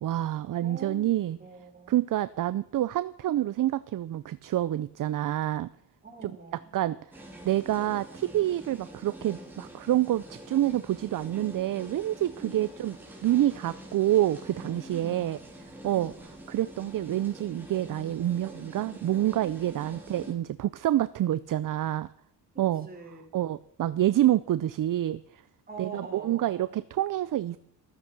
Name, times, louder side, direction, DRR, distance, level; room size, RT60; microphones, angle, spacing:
voice 1, 0.0-1.4 1.9-5.7 6.2-6.3 6.7-7.0 7.4-12.9 13.2-16.1 16.5-22.1 22.6-22.9 23.3-25.4 25.8-27.6, right 13 dB, 55° right, 15 dB, 0.5 m, -27 dB
voice 2, 0.6-2.0 6.0-6.7 12.4-12.8 14.9-15.4 15.8-16.2 19.8-20.0 22.8-23.3 25.7-26.8, right 4 dB, 20° right, 2 dB, 3.5 m, -44 dB
sound 1, 7.1-20.3, right 1 dB, 5° right, 3.4 m, -46 dB
14.5 x 13.0 x 6.0 m, 0.68 s
wide cardioid pair, 165°, 39 cm